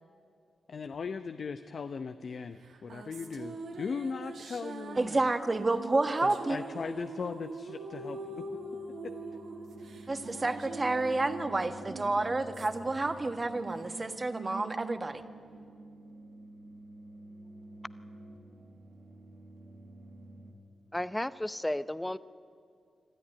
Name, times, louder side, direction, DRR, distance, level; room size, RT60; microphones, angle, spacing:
voice 1, 0.7-5.3 6.2-8.5 9.0-9.1, left 5 dB, 65° left, 9 dB, 0.7 m, -38 dB
sound 1, 2.6-16.3, right 3 dB, 80° right, 2.1 m, -44 dB
voice 2, 5.0-6.6 10.1-15.2, right 2 dB, 35° right, 8 dB, 1.5 m, -30 dB
sound 2, 8.0-20.5, right 1 dB, 50° right, 3.4 m, -50 dB
voice 3, 20.9-22.2, left 1 dB, 10° left, 15 dB, 0.7 m, -33 dB
25.0 x 13.0 x 9.8 m, 2.3 s
supercardioid pair, 45°, 0 cm